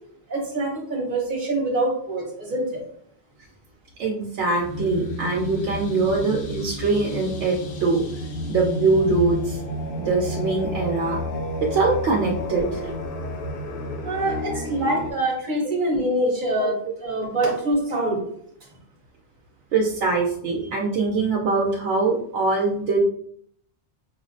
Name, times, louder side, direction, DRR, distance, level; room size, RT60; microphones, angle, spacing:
voice 1, 0.3-2.8 14.0-18.2, right 1 dB, 50° right, -2 dB, 1.0 m, -25 dB
voice 2, 4.0-8.0 8.5-9.6 10.0-11.2 11.7-12.9 14.5-14.6 16.6-16.7 19.7-23.0, right 3 dB, 85° right, -1 dB, 0.9 m, -23 dB
sound 1, 4.6-15.1, left 1 dB, 65° left, 0.7 m, -31 dB
4.6 x 2.0 x 2.5 m, 0.65 s
omnidirectional pair, 1.1 m